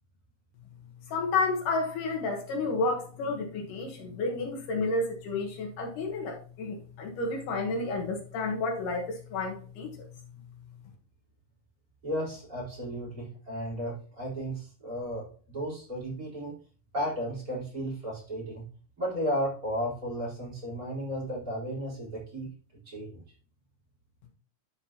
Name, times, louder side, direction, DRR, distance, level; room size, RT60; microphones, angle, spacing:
voice 1, 1.1-9.9, left 3 dB, 75° left, 2.7 m, -31 dB
voice 2, 12.0-16.6 16.9-18.6 19.0-22.5 22.9-23.2, equal, 25° right, 4.4 m, -34 dB
11.0 x 5.2 x 2.9 m
omnidirectional pair, 3.9 m